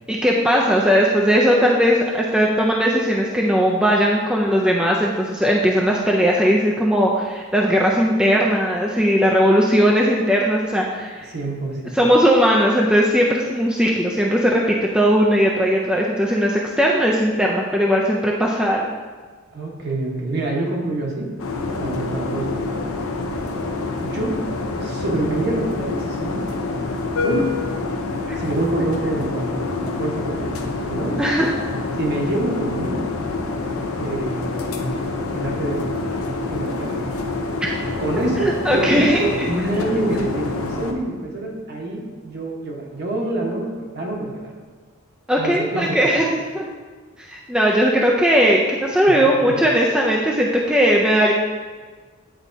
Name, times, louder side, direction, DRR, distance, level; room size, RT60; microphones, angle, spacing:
voice 1, 0.1-11.3 11.9-18.9 28.3-28.4 31.2-31.5 37.6-37.7 38.6-39.5 45.3-46.7 47.2-51.3, equal, 5° right, -3 dB, 0.4 m, -18 dB
voice 2, 11.3-12.0 19.5-21.3 21.8-22.8 24.0-24.4 24.8-26.4 27.2-27.5 28.3-30.5 30.9-31.2 32.0-33.1 34.0-36.2 36.5-37.1 38.0-44.5 45.4-46.2 49.1-49.2, right 2 dB, 50° right, -2 dB, 1.1 m, -26 dB
sound 1, 21.4-40.9, left 3 dB, 80° left, 0.6 m, -26 dB
8.9 x 4.1 x 2.7 m, 1.4 s
head